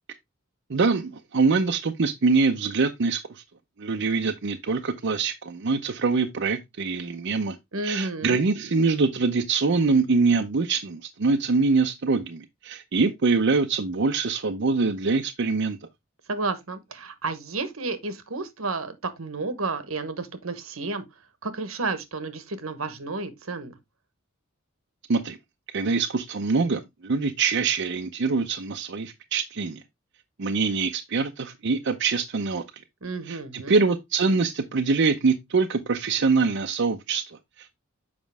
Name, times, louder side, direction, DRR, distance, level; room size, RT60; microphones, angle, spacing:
voice 1, 0.7-3.4 3.8-7.6 7.8-15.8 25.1-25.4 25.7-29.8 30.4-32.6 33.3-37.8, right 4 dB, 60° right, 0.6 m, -24 dB
voice 2, 7.7-8.4 16.3-21.0 21.4-23.8 33.0-33.8, right 3 dB, 85° right, 1.2 m, -31 dB
7.3 x 5.2 x 3.4 m
head